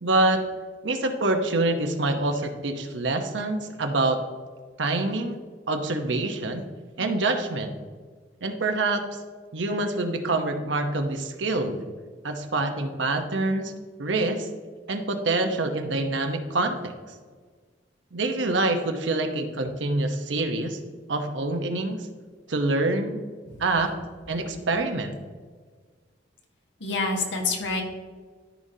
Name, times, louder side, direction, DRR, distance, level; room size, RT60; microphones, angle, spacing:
voice 1, 0.0-0.4 0.8-4.2 4.8-5.4 5.7-6.6 7.0-7.8 8.4-9.2 9.5-11.8 12.2-13.7 14.0-14.5 14.9-16.9 18.1-20.8 21.1-22.0 22.5-23.2 23.6-23.9 24.3-25.1, right 2 dB, 90° right, 5 dB, 1.0 m, -26 dB
voice 2, 26.8-27.8, left 3 dB, 80° left, 1 dB, 1.5 m, -26 dB
13.0 x 5.3 x 2.8 m, 1.5 s
head